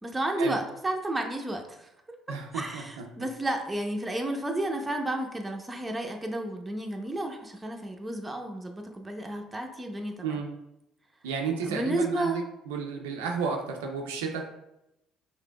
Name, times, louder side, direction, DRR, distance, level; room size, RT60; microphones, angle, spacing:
voice 1, 0.0-1.9 2.5-10.4 11.7-12.4, right 1 dB, 15° right, 3 dB, 0.7 m, -32 dB
voice 2, 2.3-3.3 10.2-10.5 11.2-14.5, right 5 dB, 85° right, 2 dB, 0.4 m, -32 dB
5.0 x 3.2 x 2.2 m, 0.86 s
hypercardioid pair, 60°, 0 cm